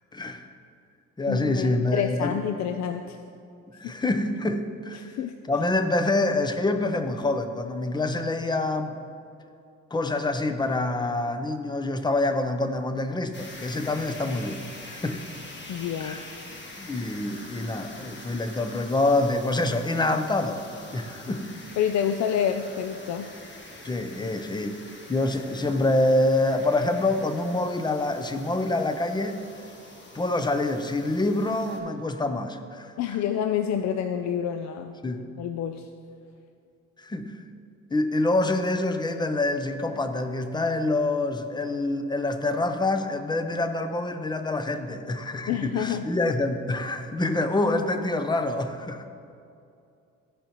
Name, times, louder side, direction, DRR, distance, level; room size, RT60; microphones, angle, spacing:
voice 1, 0.1-0.5 1.2-2.3 3.7-5.2 5.5-9.0 9.9-15.2 16.0-16.3 16.8-20.6 20.9-21.5 23.8-24.8 25.1-29.4 30.1-32.9 35.0-35.3 37.0-37.4 37.9-49.1, left 2 dB, 15° left, 8 dB, 0.6 m, -26 dB
voice 2, 1.3-3.2 5.0-5.3 15.7-16.2 21.8-23.3 33.0-35.0 35.4-35.9 45.5-46.1, left 8 dB, 65° left, 6 dB, 0.5 m, -28 dB
sound 1, 13.3-31.8, left 2 dB, 35° left, 1.3 m, -44 dB
14.5 x 5.1 x 3.0 m, 2.5 s
cardioid pair, 90°, 30 cm